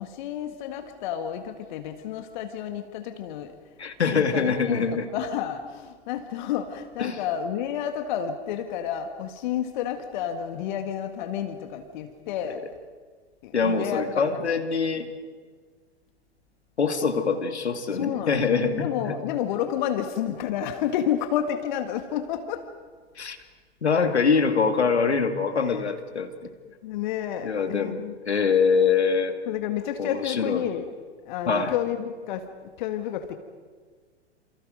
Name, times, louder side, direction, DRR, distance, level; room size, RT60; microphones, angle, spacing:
voice 1, 0.0-3.5 4.1-12.6 13.4-14.4 17.9-22.7 26.8-28.1 29.5-30.9 31.3-32.5 32.8-33.4, left 10 dB, 45° left, 7 dB, 1.9 m, -30 dB
voice 2, 3.8-5.1 7.0-7.2 13.5-15.1 16.8-19.2 23.2-23.4 23.8-26.3 27.4-29.4 30.0-30.7 31.5-31.7, left 5 dB, 70° left, 6 dB, 2.5 m, -24 dB
29.0 x 28.0 x 5.3 m, 1.5 s
figure-of-eight pair, 100°, 34 cm